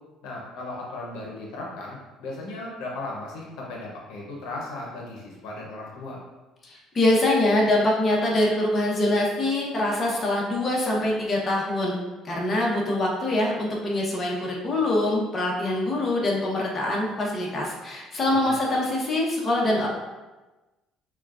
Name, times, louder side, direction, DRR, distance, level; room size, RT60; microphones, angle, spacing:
voice 1, 0.2-6.2 18.4-18.6, left 2 dB, 85° left, -2 dB, 0.8 m, -36 dB
voice 2, 6.6-12.0 12.2-19.9, left 1 dB, 35° left, -3 dB, 1.1 m, -24 dB
6.0 x 2.4 x 2.5 m, 1.1 s
cardioid pair, 100°, 0 cm